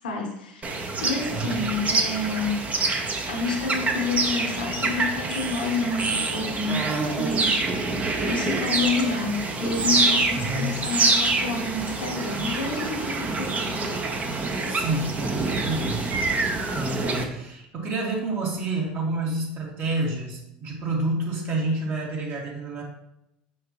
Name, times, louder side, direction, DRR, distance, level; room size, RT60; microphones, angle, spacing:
voice 1, 0.0-0.7 1.0-2.7 3.3-7.6 8.2-13.9, left 3 dB, 85° left, 0 dB, 1.1 m, -29 dB
sound 1, 0.6-17.2, right 3 dB, 30° right, 1.0 m, -26 dB
voice 2, 1.3-1.6 10.3-10.8 14.7-22.8, right 2 dB, 45° right, -2 dB, 2.4 m, -29 dB
6.4 x 5.7 x 3.1 m, 0.81 s
hypercardioid pair, 90°, 5 cm